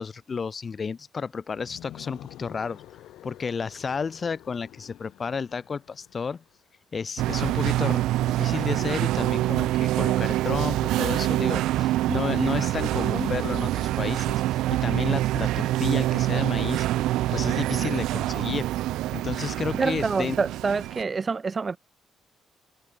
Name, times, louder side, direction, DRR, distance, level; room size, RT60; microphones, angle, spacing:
voice 1, 0.0-2.8 3.2-6.4 6.9-16.9 17.3-18.7 19.1-20.3, left 5 dB, 40° left, 0.7 m, -31 dB
sound 1, 1.5-6.6, left 13 dB, 85° left, 2.3 m, -48 dB
sound 2, 7.2-21.0, right 15 dB, 90° right, 0.6 m, -25 dB
voice 2, 19.7-21.8, right 4 dB, 35° right, 1.5 m, -26 dB
cardioid pair, 90°, 0 cm